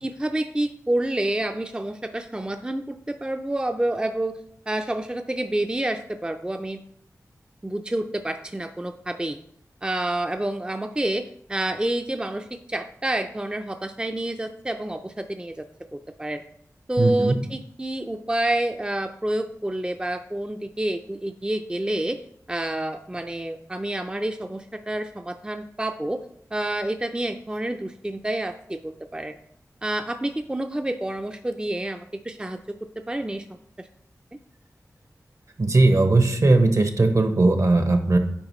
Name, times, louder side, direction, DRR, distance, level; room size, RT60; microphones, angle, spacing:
voice 1, 0.0-4.3 4.7-6.8 7.6-9.4 9.8-11.2 11.5-15.6 15.9-16.4 16.9-22.2 22.5-26.2 26.5-29.4 29.8-32.6 33.1-33.5 33.8-33.9, right 1 dB, 15° right, 6 dB, 0.4 m, -28 dB
voice 2, 17.0-17.4 35.6-38.2, right 2 dB, 55° right, 6 dB, 1.0 m, -18 dB
8.7 x 4.8 x 3.1 m, 0.69 s
wide cardioid pair, 50°, 6 cm